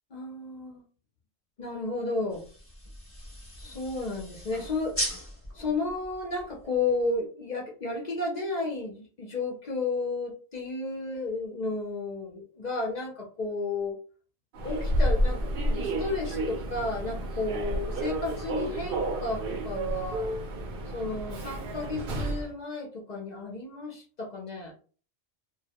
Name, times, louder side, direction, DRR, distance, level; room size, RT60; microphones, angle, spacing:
voice 1, 0.1-0.8 1.6-2.5 3.6-5.0 5.5-14.0 14.6-20.3 20.9-24.7, left 3 dB, 55° left, 0 dB, 0.5 m, -33 dB
sound 1, 2.3-7.1, equal, 15° left, 0.8 m, -39 dB
Human voice / Subway metro underground, 14.5-22.5, right 1 dB, 60° right, 0.7 m, -30 dB
2.2 x 2.1 x 2.7 m, 0.41 s
omnidirectional pair, 1.2 m